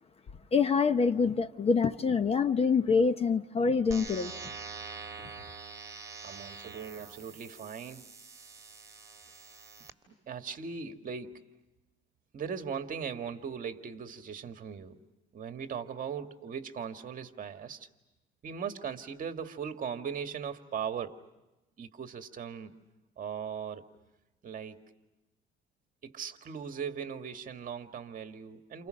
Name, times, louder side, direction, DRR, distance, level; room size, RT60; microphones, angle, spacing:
voice 1, 0.5-4.3, left 5 dB, 30° left, 0.9 m, -26 dB
sound 1, 3.9-9.9, right 4 dB, 15° right, 3.2 m, -45 dB
voice 2, 6.2-8.0 10.1-11.4 12.3-15.0 15.3-17.9 18.4-21.2 21.8-22.7 23.2-23.9 24.4-24.8 26.0-28.9, right 7 dB, 40° right, 1.9 m, -39 dB
29.5 x 29.0 x 6.5 m
cardioid pair, 145°, 21 cm